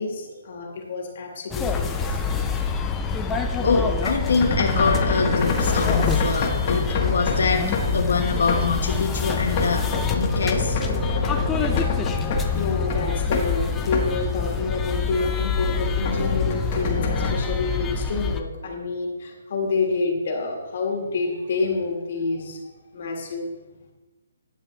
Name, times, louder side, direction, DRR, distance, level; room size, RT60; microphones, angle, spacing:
voice 1, 0.0-2.6 3.6-3.7 12.5-22.6 22.9-23.5, left 4 dB, 50° left, 0 dB, 1.6 m, -28 dB
sound 1, 1.5-18.4, left 5 dB, 10° left, 0.5 m, -26 dB
sound 2, 3.3-7.5 7.7-7.9 8.5-8.9 9.2-12.6 12.9-13.5 13.8-14.2 14.5-14.6 15.2-17.4, left 3 dB, 35° left, 1.3 m, -27 dB
voice 2, 3.6-9.9 10.1-10.8, left 4 dB, 75° left, 2 dB, 1.1 m, -24 dB
10.5 x 6.8 x 3.2 m, 1.2 s
hypercardioid pair, 160°, 0 cm